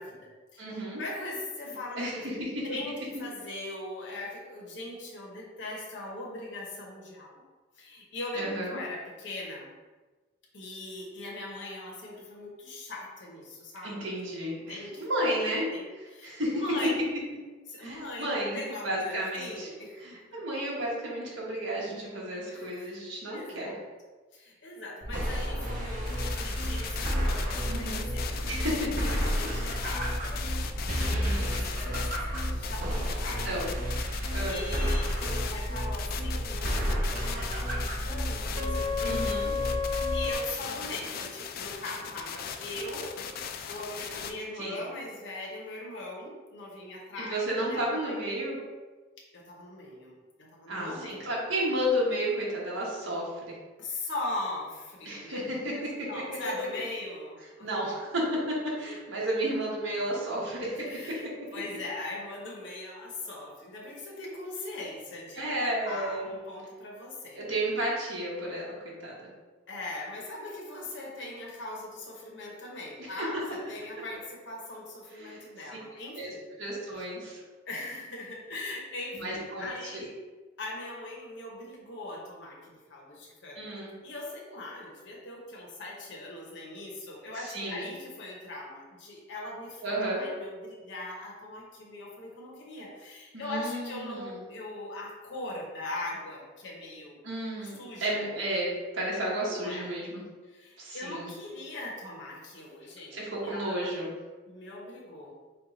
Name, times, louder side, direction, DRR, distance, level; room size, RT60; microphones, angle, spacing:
voice 1, 0.0-7.4 7.8-9.7 10.5-14.1 14.7-15.1 15.4-17.1 17.7-20.4 22.5-23.8 24.3-33.6 34.0-39.2 39.5-39.6 40.1-43.3 43.7-48.2 49.3-51.4 53.8-57.7 60.9-65.5 65.8-67.4 69.7-76.5 77.7-80.2 80.6-83.6 84.0-97.2 97.6-98.3 99.5-99.9 100.4-103.8 104.5-105.4, left 2 dB, 65° left, -2 dB, 0.9 m, -40 dB
voice 2, 0.6-1.0 2.0-2.5 8.3-8.8 13.8-15.6 16.2-16.6 17.8-19.7 20.0-23.7 27.7-28.0 28.4-28.9 31.2-31.6 33.4-33.7 34.3-34.7 39.0-39.5 44.6-44.8 47.2-48.6 50.7-53.6 55.0-56.1 57.6-60.9 65.4-66.3 67.4-69.3 73.0-73.3 75.1-75.5 76.1-76.3 76.6-77.4 79.1-80.0 83.6-83.9 87.5-87.9 89.8-90.3 93.3-94.5 97.2-100.2 100.8-101.3 103.1-104.1, right 1 dB, 85° right, -4 dB, 1.2 m, -32 dB
sound 1, 25.0-40.3, equal, 50° right, 0.9 m, -31 dB
sound 2, 26.1-44.3, left 7 dB, 50° left, 0.3 m, -39 dB
4.4 x 2.3 x 3.9 m, 1.3 s
head